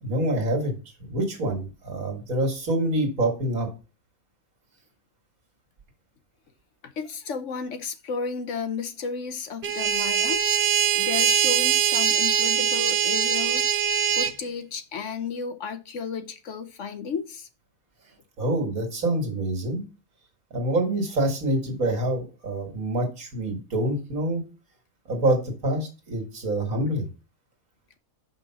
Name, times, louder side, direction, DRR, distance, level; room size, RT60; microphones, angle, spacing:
voice 1, 0.0-0.8 1.1-3.7 18.4-19.8 20.5-24.4 25.1-27.1, right 1 dB, 70° right, 2.3 m, -26 dB
voice 2, 6.8-13.7 14.1-17.5, left 5 dB, 60° left, 1.0 m, -33 dB
sound 1, 9.6-14.3, right 8 dB, 55° right, 0.9 m, -22 dB
5.7 x 5.3 x 5.8 m
omnidirectional pair, 1.5 m